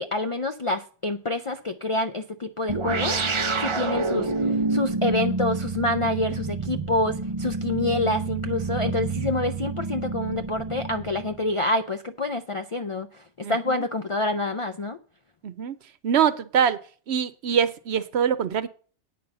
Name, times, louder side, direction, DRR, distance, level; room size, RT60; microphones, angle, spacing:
voice 1, 0.0-4.3 4.7-13.2 13.5-15.0, left 2 dB, 55° left, 0.3 m, -27 dB
sound 1, 2.7-11.5, right 3 dB, 35° right, 0.6 m, -28 dB
voice 2, 13.4-13.9 15.4-15.8 16.0-16.8 17.1-18.7, right 8 dB, 70° right, 1.0 m, -24 dB
9.2 x 5.5 x 7.7 m
omnidirectional pair, 1.2 m